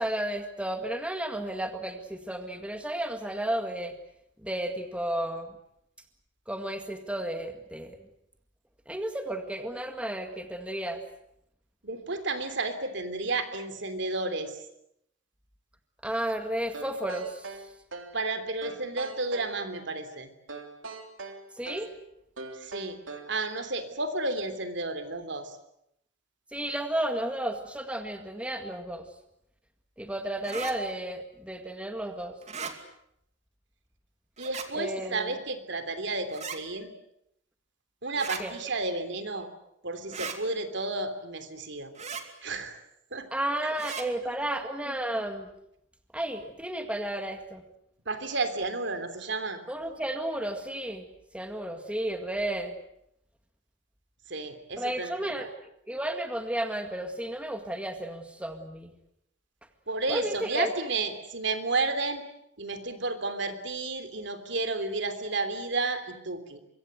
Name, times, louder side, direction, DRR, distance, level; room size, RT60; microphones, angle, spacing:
voice 1, 0.0-3.9 4.4-5.5 6.5-8.0 8.9-11.0 16.0-17.5 21.6-21.9 26.5-29.1 30.0-32.4 34.7-35.3 38.4-38.5 43.3-45.5 46.1-47.6 49.7-51.1 51.3-52.8 54.8-58.9 60.1-60.7, right 1 dB, 5° right, 6 dB, 1.9 m, -33 dB
voice 2, 11.8-14.6 18.1-20.3 22.6-23.0 23.3-25.6 34.4-36.9 38.0-39.5 39.8-41.9 42.4-42.8 43.1-43.3 44.0-44.3 48.0-49.6 54.3-55.5 59.9-62.2 62.6-66.6, right 3 dB, 65° right, 9 dB, 3.3 m, -32 dB
sound 1, 16.7-18.2 18.6-19.6 20.5-21.9 22.4-23.4, right 3 dB, 85° right, 3.2 m, -41 dB
sound 2, 30.4-30.7 32.4-32.7 34.4-34.7 36.3-36.6 38.1-38.4 40.1-40.4 41.9-42.2 43.7-44.0, right 5 dB, 35° right, 2.7 m, -36 dB
24.5 x 23.5 x 8.1 m, 0.77 s
head